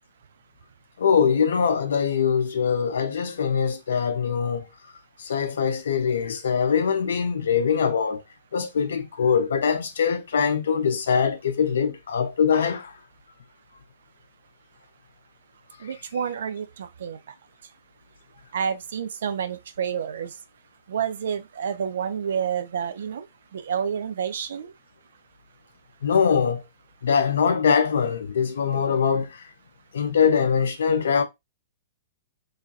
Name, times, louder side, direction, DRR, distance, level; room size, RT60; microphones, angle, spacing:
voice 1, 1.0-4.7 5.2-8.2 8.5-12.9 26.0-26.6 27.0-29.3 29.9-31.2, left 6 dB, 65° left, 0.5 m, -22 dB
voice 2, 15.8-17.3 18.5-20.4 20.9-23.3 23.5-24.7, right 7 dB, 60° right, 0.4 m, -29 dB
3.2 x 2.3 x 2.6 m
figure-of-eight pair, 105°, 0 cm